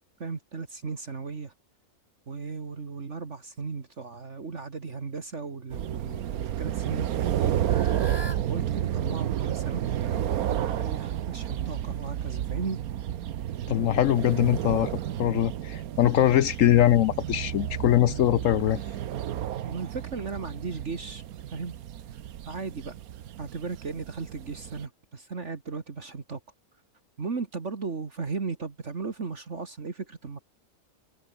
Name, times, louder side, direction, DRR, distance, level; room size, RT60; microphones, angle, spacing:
voice 1, 0.2-1.5 2.3-7.6 8.1-8.2 8.5-12.8 19.6-21.2 21.5-21.7 22.5-22.9 23.4-26.4 27.2-30.4, right 4 dB, 50° right, 2.2 m, -36 dB
sound 1, 5.7-24.9, right 11 dB, 70° right, 1.3 m, -31 dB
Fowl / Bird, 7.1-12.4, equal, 15° left, 7.7 m, -47 dB
voice 2, 13.7-14.9 15.2-18.8, left 12 dB, 65° left, 0.9 m, -22 dB
omnidirectional pair, 1.6 m